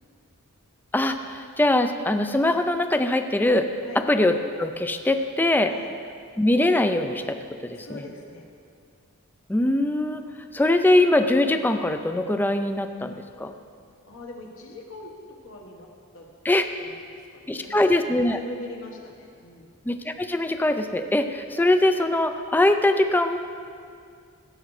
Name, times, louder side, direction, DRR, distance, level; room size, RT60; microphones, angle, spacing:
voice 1, 0.9-3.7 4.1-5.7 6.4-7.4 7.6-8.0 9.5-10.2 10.5-13.5 16.5-16.7 17.5-18.4 19.9-23.4, left 1 dB, 10° left, 8 dB, 0.3 m, -22 dB
voice 2, 7.7-8.5 14.1-15.1 15.4-16.3 16.8-17.9 18.3-19.7, left 2 dB, 65° left, 1 dB, 1.3 m, -42 dB
15.5 x 7.6 x 3.2 m, 2.3 s
head